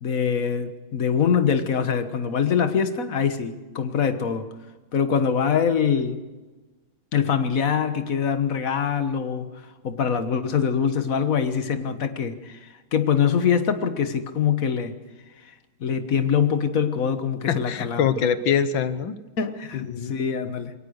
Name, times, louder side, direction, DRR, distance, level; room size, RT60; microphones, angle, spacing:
voice 1, 0.0-4.5 4.9-6.2 7.1-9.5 9.8-14.9 15.8-18.0 19.4-20.7, left 7 dB, 45° left, 9 dB, 1.5 m, -24 dB
voice 2, 17.5-19.2 19.7-20.2, left 7 dB, 70° left, 13 dB, 1.7 m, -24 dB
22.0 x 19.0 x 6.6 m, 1.2 s
omnidirectional pair, 2.3 m